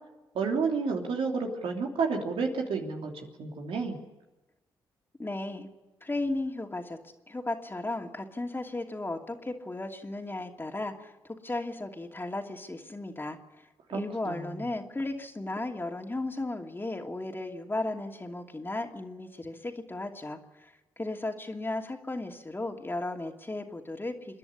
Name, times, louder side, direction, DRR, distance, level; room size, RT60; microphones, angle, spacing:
voice 1, 0.3-4.0 13.9-14.6, right 4 dB, 80° right, 1 dB, 3.1 m, -31 dB
voice 2, 5.2-5.7 6.0-7.0 7.3-13.4 13.9-24.4, left 2 dB, 25° left, 3 dB, 2.7 m, -35 dB
27.5 x 10.5 x 9.9 m, 1.1 s
supercardioid pair, 55°, 10 cm